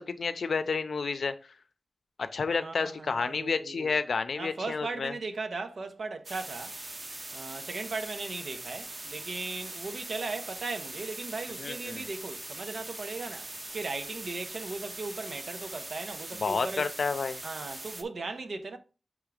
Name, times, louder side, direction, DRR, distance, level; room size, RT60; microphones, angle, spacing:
voice 1, 0.0-1.4 2.2-5.1 11.6-12.0 16.4-17.4, left 4 dB, 75° left, 0.5 m, -30 dB
voice 2, 2.5-3.9 4.4-6.7 7.3-16.8 17.4-18.8, right 3 dB, 80° right, 0.8 m, -38 dB
sound 1, 6.2-18.0, right 2 dB, 30° right, 0.7 m, -41 dB
5.9 x 3.5 x 5.0 m
wide cardioid pair, 105°, 0 cm